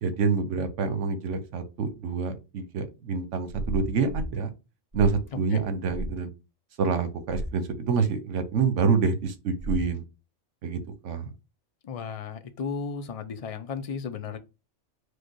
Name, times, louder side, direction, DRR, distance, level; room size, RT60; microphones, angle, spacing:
voice 1, 0.0-4.5 4.9-6.3 6.8-10.0 10.6-11.3, right 5 dB, 80° right, 1.1 m, -27 dB
sound 1, 3.5-4.4 4.9-5.3 5.9-6.2 7.3-7.6 9.6-10.0, right 1 dB, 15° right, 1.1 m, -33 dB
voice 2, 11.8-14.4, left 5 dB, 55° left, 0.4 m, -34 dB
4.9 x 2.2 x 4.5 m
omnidirectional pair, 1.3 m